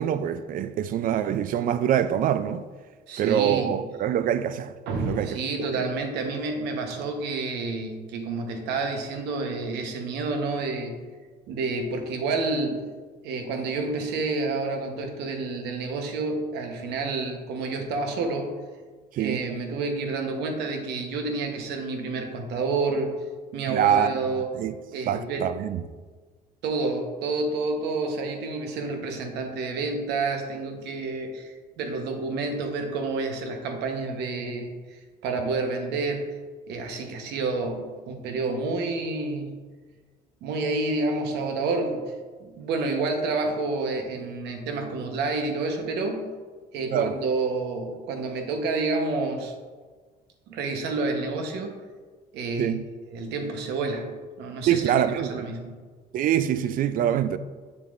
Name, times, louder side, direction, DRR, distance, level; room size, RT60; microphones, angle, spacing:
voice 1, 0.0-2.6 3.2-5.4 5.7-5.9 19.1-19.4 23.7-24.2 24.6-24.7 25.1-25.8 46.9-47.2 52.6-52.8 54.7-55.5 56.1-57.4, right 10 dB, 55° right, 0.4 m, -25 dB
voice 2, 3.1-3.8 4.9-11.0 11.5-12.8 13.2-18.5 19.1-23.1 23.5-24.5 24.9-25.5 26.6-36.3 36.7-39.6 40.4-42.1 42.4-46.3 46.7-49.5 50.5-51.7 52.3-52.7 53.1-54.1 54.4-54.8 55.2-55.8, right 3 dB, 80° right, 1.0 m, -29 dB
7.1 x 6.7 x 2.5 m
cardioid pair, 110°, 17 cm